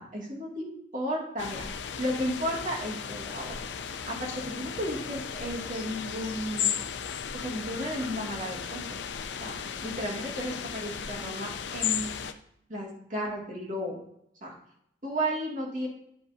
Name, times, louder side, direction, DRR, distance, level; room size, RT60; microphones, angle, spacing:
voice 1, 0.0-3.6 4.1-6.7 7.3-9.0 9.4-9.5 9.8-12.2 12.7-14.0 14.4-14.5 15.0-15.9, equal, 45° right, -3 dB, 2.3 m, -34 dB
sound 1, 1.4-12.3, left 8 dB, 80° left, 0.6 m, -35 dB
11.0 x 5.3 x 2.7 m, 0.74 s
head